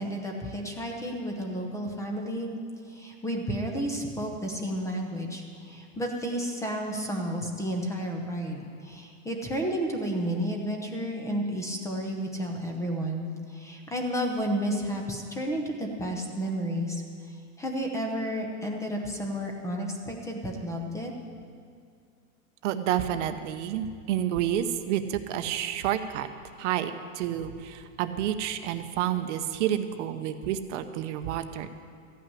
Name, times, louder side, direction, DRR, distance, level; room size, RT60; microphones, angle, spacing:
voice 1, 0.0-2.5 2.9-21.1, equal, 5° left, 2 dB, 0.8 m, -32 dB
voice 2, 22.6-26.3 26.6-31.7, right 11 dB, 60° right, 9 dB, 0.8 m, -29 dB
14.0 x 5.8 x 9.8 m, 2.2 s
supercardioid pair, 160°, 41 cm